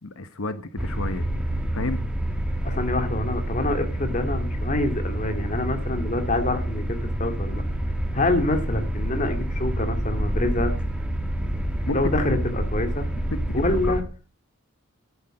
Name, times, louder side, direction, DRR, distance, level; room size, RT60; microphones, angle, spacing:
voice 1, 0.0-1.3 1.7-2.0 11.9-12.0 13.3-14.0, left 2 dB, 80° left, 10 dB, 1.1 m, -31 dB
sound 1, 0.8-14.0, equal, 5° right, 1.6 m, -27 dB
voice 2, 2.6-7.6 8.1-10.7 11.9-13.1 13.5-14.0, left 2 dB, 35° left, 6 dB, 2.3 m, -26 dB
13.0 x 8.0 x 7.7 m, 0.39 s
head